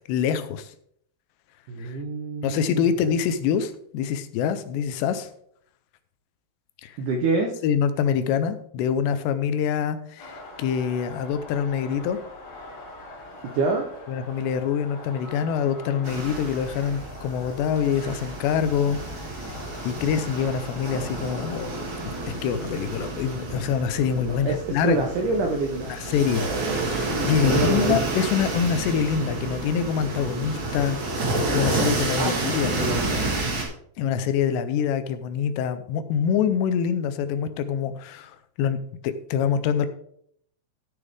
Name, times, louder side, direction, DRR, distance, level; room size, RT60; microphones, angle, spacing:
voice 1, 0.1-0.7 1.8-2.0 2.4-5.3 6.8-7.0 7.6-12.2 14.1-19.0 19.9-25.0 25.9-26.5 26.7-32.7 34.0-38.8 39.0-39.9, left 7 dB, 80° left, 11 dB, 2.9 m, -25 dB
voice 2, 1.7-2.8 7.0-7.5 13.5-13.9 24.2-25.9 27.4-28.0 31.7-32.4 32.8-33.3, right 3 dB, 80° right, 3 dB, 1.8 m, -26 dB
sound 1, 10.2-25.0, left 2 dB, 45° left, 3.3 m, -43 dB
sound 2, 16.0-33.6, right 2 dB, 45° right, 1.7 m, -29 dB
13.5 x 6.6 x 3.6 m, 0.67 s
omnidirectional pair, 4.9 m